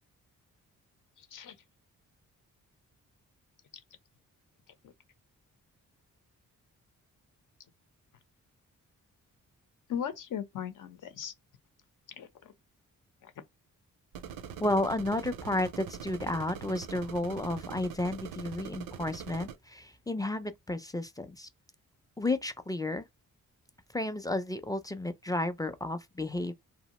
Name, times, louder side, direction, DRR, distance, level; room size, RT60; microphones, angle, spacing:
voice 1, 9.9-11.3 12.2-12.5 13.2-13.3, left 8 dB, 65° left, 0.8 m, -37 dB
sound 1, 14.1-19.6, right 8 dB, 80° right, 0.5 m, -43 dB
voice 2, 14.6-21.5 22.2-23.1 23.9-26.5, left 2 dB, 10° left, 0.4 m, -32 dB
2.7 x 2.0 x 2.9 m
cardioid pair, 70°, 33 cm